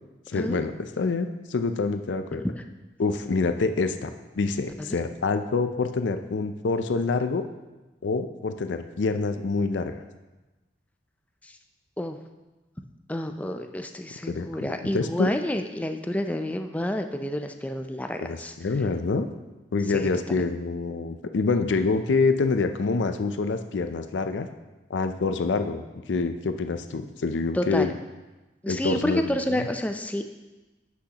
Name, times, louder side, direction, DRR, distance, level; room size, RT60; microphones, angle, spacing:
voice 1, 0.3-2.5 3.0-4.1 4.4-7.4 8.0-10.0 14.3-14.7 14.9-15.3 18.2-19.3 19.7-24.5 24.9-27.9 28.7-29.2 29.5-29.7, left 4 dB, 80° left, 8 dB, 0.5 m, -26 dB
voice 2, 13.1-18.5 19.9-20.4 27.5-27.9 28.6-30.2, left 1 dB, 10° left, 6 dB, 0.4 m, -29 dB
11.0 x 6.3 x 2.9 m, 1.1 s
head